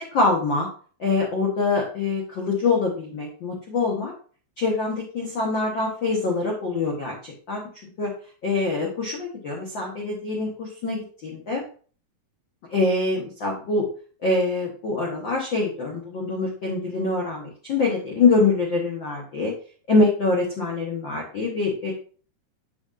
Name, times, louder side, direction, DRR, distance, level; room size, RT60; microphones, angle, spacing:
voice 1, 0.1-0.7 1.0-4.1 4.6-7.6 8.0-8.1 8.4-11.6 12.7-13.9 14.2-19.5 19.9-21.9, left 3 dB, 80° left, -1 dB, 1.0 m, -24 dB
8.0 x 6.5 x 2.5 m, 0.41 s
omnidirectional pair, 4.1 m